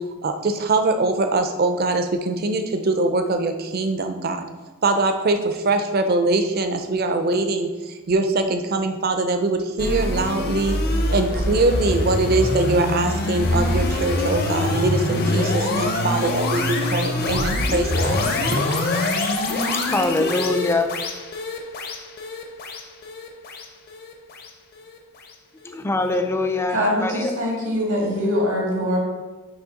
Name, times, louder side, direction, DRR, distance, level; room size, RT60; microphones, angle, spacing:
voice 1, 0.2-4.4 4.8-10.7 11.1-18.2 18.5-18.6, right 2 dB, 45° right, 7 dB, 0.5 m, -22 dB
sound 1, 9.8-25.0, left 2 dB, 45° left, 0.7 m, -24 dB
voice 2, 19.7-20.9 25.6-27.3, left 2 dB, 10° left, 6 dB, 0.3 m, -23 dB
voice 3, 26.7-29.0, equal, 90° right, -3 dB, 1.9 m, -23 dB
6.3 x 3.1 x 5.0 m, 1.3 s
head